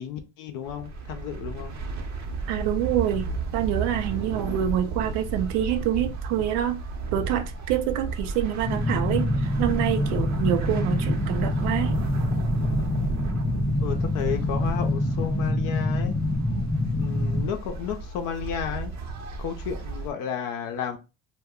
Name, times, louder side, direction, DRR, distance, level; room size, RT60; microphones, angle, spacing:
voice 1, 0.0-1.8 13.8-16.1 17.0-18.9 19.4-21.0, left 8 dB, 65° left, 0.6 m, -32 dB
sound 1, 0.6-20.1, right 4 dB, 50° right, 0.8 m, -33 dB
voice 2, 2.5-6.8 7.1-12.0, right 11 dB, 75° right, 0.6 m, -26 dB
sound 2, 8.6-17.4, left 2 dB, 10° left, 0.5 m, -26 dB
2.3 x 2.2 x 3.5 m
supercardioid pair, 85°, 35 cm